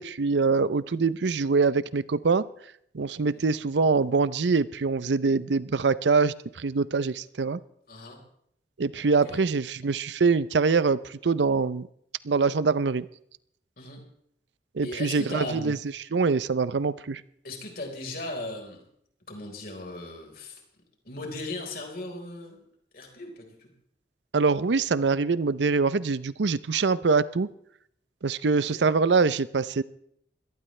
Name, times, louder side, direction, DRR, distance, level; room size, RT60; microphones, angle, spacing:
voice 1, 0.0-2.5 2.9-7.6 8.8-11.9 12.2-13.1 14.7-15.8 16.1-17.2 24.3-27.5 28.2-29.8, right 4 dB, 85° right, 16 dB, 0.6 m, -24 dB
voice 2, 7.9-8.2 9.2-9.4 13.8-14.0 14.8-15.7 17.4-18.8 19.3-20.6 21.0-22.6 22.9-23.7 28.6-28.9, left 2 dB, 55° left, 1 dB, 4.3 m, -37 dB
23.5 x 18.0 x 3.3 m, 0.71 s
head